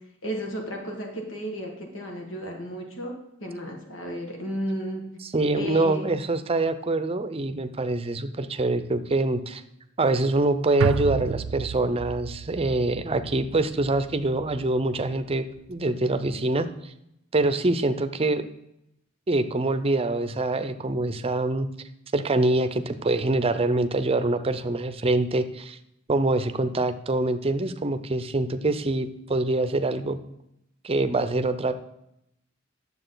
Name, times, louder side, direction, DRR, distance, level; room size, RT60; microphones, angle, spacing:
voice 1, 0.2-3.1 3.4-5.0 5.5-6.1, equal, 85° left, 1 dB, 1.8 m, -33 dB
voice 2, 5.3-9.6 10.0-16.9 17.3-18.5 19.3-21.7 22.1-25.8 26.1-30.2 30.8-31.7, right 2 dB, 30° right, 10 dB, 0.6 m, -25 dB
sound 1, 10.8-15.2 15.6-15.7, right 6 dB, 85° right, 0.4 m, -32 dB
10.0 x 7.4 x 3.9 m, 0.82 s
head